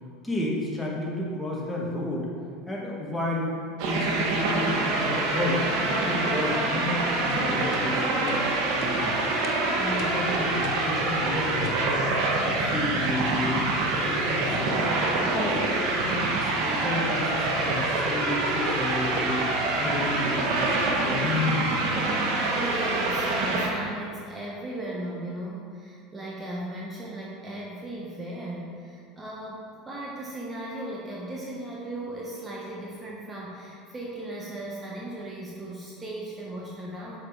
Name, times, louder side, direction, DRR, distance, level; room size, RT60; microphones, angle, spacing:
voice 1, 0.2-2.3 2.7-3.5 3.9-5.6 6.0-8.4 8.7-9.2 9.8-12.1 12.4-13.6 14.0-14.8 15.2-19.4 19.8-20.8 21.0-21.8, left 2 dB, 10° left, -4 dB, 1.7 m, -31 dB
sound 1, 3.8-23.7, right 2 dB, 65° right, 1.3 m, -26 dB
sound 2, 7.3-7.4 7.7-7.9 8.3-8.4 8.8-9.0 9.4-9.6 10.0-10.2 10.6-10.9 11.6-11.9 13.2-13.4 14.5-14.8 15.6-15.8, left 7 dB, 55° left, 0.6 m, -41 dB
voice 2, 22.4-37.2, right 1 dB, 20° right, -4 dB, 1.1 m, -37 dB
6.5 x 5.3 x 4.8 m, 2.2 s
supercardioid pair, 100°, 0 cm